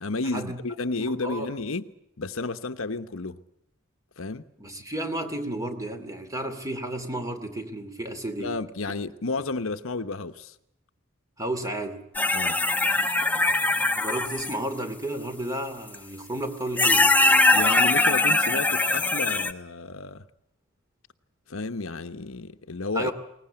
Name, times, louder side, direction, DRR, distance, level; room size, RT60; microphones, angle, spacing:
voice 1, 0.0-1.9 2.2-3.4 4.2-4.4 8.4-10.5 12.3-12.6 17.5-20.2 21.5-23.1, left 3 dB, 75° left, 1.0 m, -32 dB
voice 2, 0.9-1.5 4.6-8.6 11.4-12.0 14.0-17.5 22.9-23.1, right 1 dB, 15° right, 2.5 m, -32 dB
sound 1, 12.1-14.5 15.9-16.0 16.8-19.5, left 2 dB, 10° left, 1.0 m, -21 dB
21.5 x 19.5 x 8.8 m
head